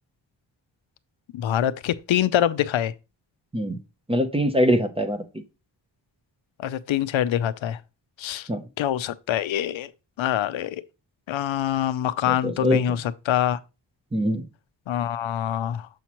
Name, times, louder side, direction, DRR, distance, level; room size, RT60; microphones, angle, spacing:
voice 1, 1.3-2.9 6.6-7.8 8.2-8.5 8.8-9.9 10.2-10.8 11.3-13.6 14.9-15.9, left 11 dB, 90° left, 0.6 m, -25 dB
voice 2, 4.1-5.2 8.5-8.6 12.3-12.8 14.1-14.4, equal, 15° right, 0.5 m, -23 dB
7.1 x 5.7 x 3.0 m
wide cardioid pair, 170°, 45 cm